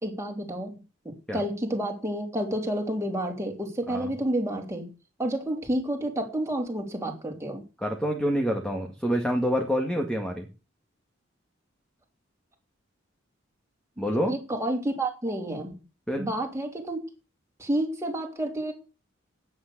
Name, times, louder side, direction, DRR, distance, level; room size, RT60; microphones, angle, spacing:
voice 1, 0.0-0.8 1.0-4.9 5.2-7.6 14.0-15.7 16.2-17.0 17.6-18.7, right 1 dB, 15° right, 1 dB, 3.4 m, -30 dB
voice 2, 7.8-10.5 14.0-14.3 16.1-16.3, equal, 5° left, 3 dB, 2.1 m, -27 dB
11.0 x 8.9 x 6.9 m, 0.32 s
head